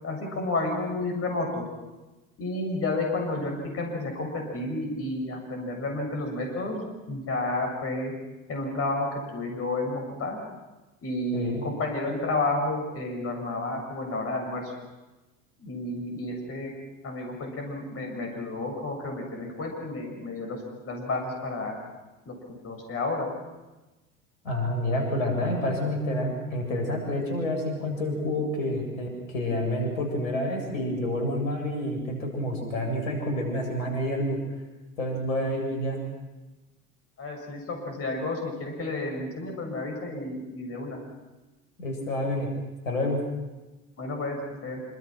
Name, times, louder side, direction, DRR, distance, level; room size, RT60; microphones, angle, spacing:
voice 1, 0.0-1.6 2.4-6.8 7.1-8.1 8.5-10.4 11.0-14.7 15.6-16.7 17.0-20.6 20.8-21.7 22.3-22.4 22.6-23.3 37.2-41.0 44.0-44.8, left 2 dB, 35° left, 2 dB, 7.0 m, -31 dB
voice 2, 11.3-11.7 24.4-34.4 35.0-36.0 41.8-42.5 42.8-43.2, left 1 dB, 70° left, 3 dB, 7.7 m, -28 dB
26.5 x 26.0 x 6.1 m, 1.1 s
figure-of-eight pair, 80°, 42 cm